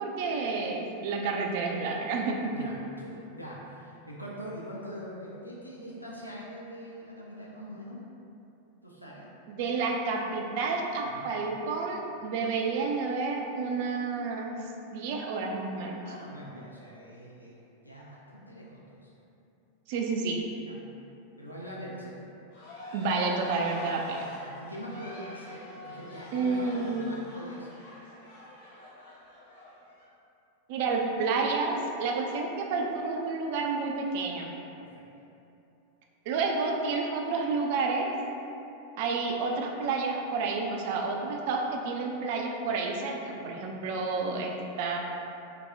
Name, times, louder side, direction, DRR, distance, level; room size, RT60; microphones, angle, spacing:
voice 1, 0.0-2.5 9.5-14.6 14.9-16.0 19.9-20.5 22.9-24.2 26.3-27.1 30.7-34.5 36.3-38.1 39.0-45.0, right 4 dB, 50° right, 1 dB, 0.3 m, -30 dB
voice 2, 2.5-8.3 8.8-9.3 11.0-11.3 16.0-17.6 17.8-19.1 20.6-20.8 21.4-22.3 24.1-27.8 34.8-35.0 43.3-43.5, equal, 85° left, -5 dB, 0.3 m, -43 dB
sound 1, 22.5-30.1, left 1 dB, 50° left, 0.7 m, -46 dB
2.3 x 2.0 x 3.4 m, 2.8 s
figure-of-eight pair, 90°, 0 cm